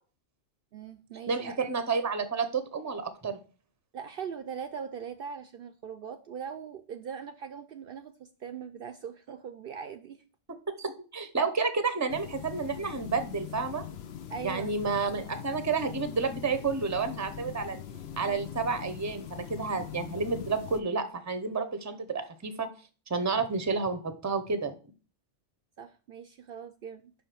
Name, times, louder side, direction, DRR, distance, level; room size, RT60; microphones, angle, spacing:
voice 1, 0.7-1.6 3.9-10.2 14.3-14.8 25.8-27.1, right 7 dB, 60° right, 9 dB, 0.7 m, -41 dB
voice 2, 1.3-3.4 10.8-13.8 14.4-17.8 18.2-22.7 23.1-24.7, right 4 dB, 20° right, 9 dB, 0.7 m, -30 dB
sound 1, 12.1-20.8, left 9 dB, 70° left, 0.9 m, -42 dB
5.6 x 5.0 x 5.9 m, 0.37 s
omnidirectional pair, 1.2 m